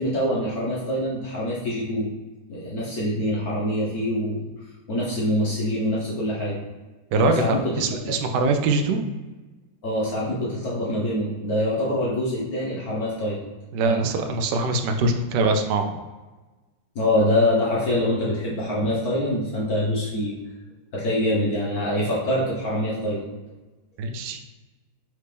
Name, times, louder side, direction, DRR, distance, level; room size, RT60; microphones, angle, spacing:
voice 1, 0.0-2.1 2.5-4.4 4.9-6.6 7.2-8.1 9.8-13.4 13.8-14.1 16.9-20.4 20.9-23.3, left 1 dB, 55° left, -6 dB, 1.2 m, -25 dB
voice 2, 7.1-9.0 13.7-16.0 24.0-24.4, right 3 dB, 75° right, 6 dB, 1.1 m, -23 dB
4.5 x 3.1 x 3.3 m, 1.2 s
omnidirectional pair, 2.2 m